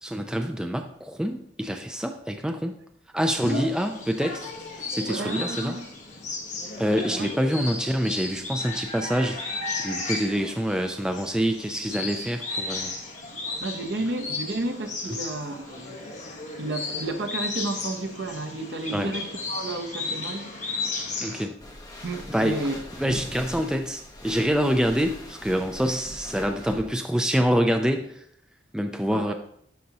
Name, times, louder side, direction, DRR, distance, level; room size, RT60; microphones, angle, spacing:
voice 1, 0.0-2.7 3.1-4.5 4.9-5.8 6.8-9.4 9.8-12.9 15.1-15.2 18.9-19.1 21.2-21.6 22.3-22.6 23.0-28.2 28.7-29.3, equal, 5° right, 0.3 m, -26 dB
voice 2, 3.3-3.9 5.1-5.8 7.1-7.3 13.6-16.0 16.6-20.9 22.0-22.8 23.1-23.2 29.1-29.3, right 2 dB, 65° right, 0.9 m, -32 dB
sound 1, 3.4-21.5, left 3 dB, 40° left, 1.5 m, -34 dB
sound 2, 21.6-26.9, left 1 dB, 20° left, 1.2 m, -41 dB
11.5 x 5.0 x 3.0 m
head